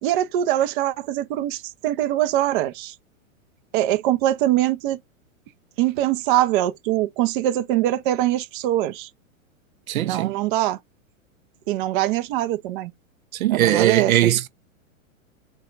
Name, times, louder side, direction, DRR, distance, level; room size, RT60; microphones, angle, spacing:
voice 1, 0.0-2.9 3.7-5.0 5.8-9.1 10.0-10.8 11.7-12.9 13.5-14.3, right 13 dB, 40° right, 0.6 m, -23 dB
voice 2, 9.9-10.4 13.3-14.5, right 13 dB, 85° right, 0.6 m, -20 dB
4.1 x 2.3 x 3.8 m
hypercardioid pair, 130°, 41 cm